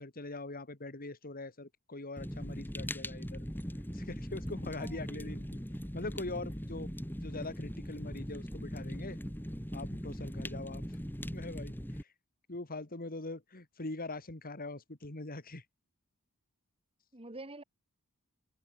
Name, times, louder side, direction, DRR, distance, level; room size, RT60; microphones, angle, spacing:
voice 1, 0.0-3.5 3.9-5.4 5.9-6.9 7.2-9.2 9.7-10.8 11.3-12.1 12.5-15.6, left 2 dB, 40° left, 2.5 m, -42 dB
Fire, 2.2-12.0, equal, 10° left, 7.2 m, -40 dB
voice 2, 4.8-5.3 17.1-17.6, right 2 dB, 25° right, 3.4 m, -47 dB
head